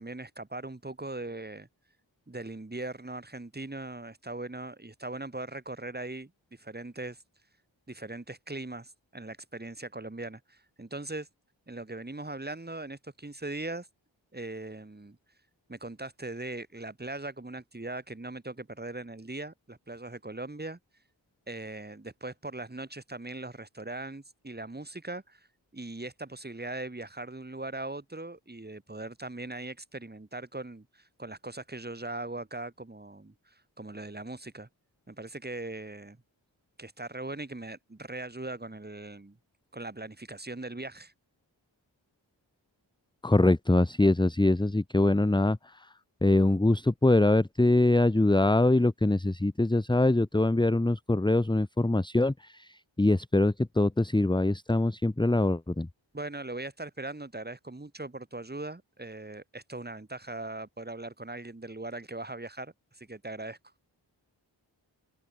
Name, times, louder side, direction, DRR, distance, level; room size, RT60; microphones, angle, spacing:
voice 1, 0.0-1.7 2.3-7.2 7.9-11.3 11.7-13.9 14.3-15.2 15.7-20.8 21.5-25.5 25.7-34.7 35.1-36.2 36.8-39.4 39.7-41.1 56.1-63.6, right 2 dB, 20° right, 7.1 m, -40 dB
voice 2, 43.2-45.6 46.2-52.7 53.0-55.9, left 2 dB, 10° left, 1.2 m, -23 dB
open air
wide cardioid pair, 115°, 47 cm